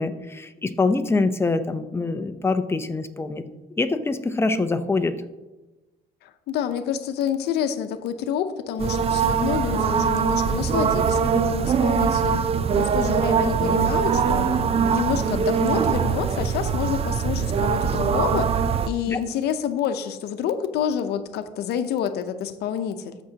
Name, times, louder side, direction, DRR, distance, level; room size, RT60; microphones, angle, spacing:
voice 1, 0.0-3.4 3.8-5.2 19.1-19.2, left 3 dB, 15° left, 9 dB, 0.6 m, -24 dB
voice 2, 6.2-12.4 12.8-18.5 18.9-23.2, left 8 dB, 75° left, 9 dB, 0.8 m, -28 dB
sound 1, 8.8-18.9, right 7 dB, 35° right, 0.5 m, -22 dB
14.0 x 6.2 x 2.9 m, 1.1 s
cardioid pair, 110°, 17 cm